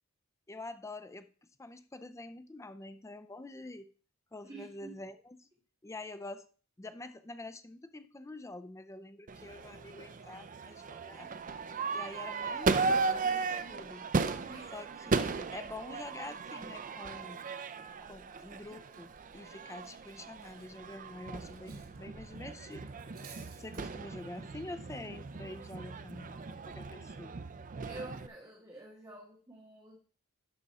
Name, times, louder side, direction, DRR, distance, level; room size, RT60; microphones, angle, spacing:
voice 1, 0.5-3.9 4.3-5.5 5.8-6.5 6.8-11.3 11.9-14.1 14.7-17.6 18.0-22.9 23.6-27.4, left 2 dB, 15° left, 0.5 m, -46 dB
voice 2, 4.4-5.0 14.5-14.7 27.9-30.0, right 2 dB, 15° right, 1.2 m, -48 dB
Crowd / Fireworks, 9.3-28.3, right 4 dB, 35° right, 0.5 m, -36 dB
Cutlery silverware, 18.8-22.0 22.2-22.4 22.8-23.8, right 7 dB, 75° right, 2.3 m, -57 dB
sound 1, 20.5-25.7, left 1 dB, 65° left, 3.9 m, -64 dB
11.5 x 5.1 x 4.2 m
head